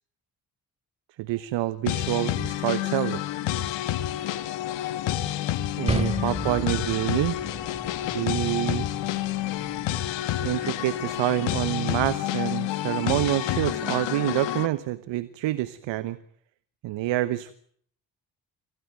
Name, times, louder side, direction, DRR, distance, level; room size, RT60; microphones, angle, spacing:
voice 1, 1.2-3.2 5.8-7.4 8.1-8.9 10.4-16.2 16.8-17.5, right 16 dB, 75° right, 15 dB, 1.2 m, -27 dB
sound 1, 1.8-14.7, left 13 dB, 80° left, 1.7 m, -29 dB
sound 2, 5.9-12.0, right 1 dB, 15° right, 4.2 m, -35 dB
25.5 x 17.0 x 9.1 m, 0.63 s
hypercardioid pair, 45°, 45 cm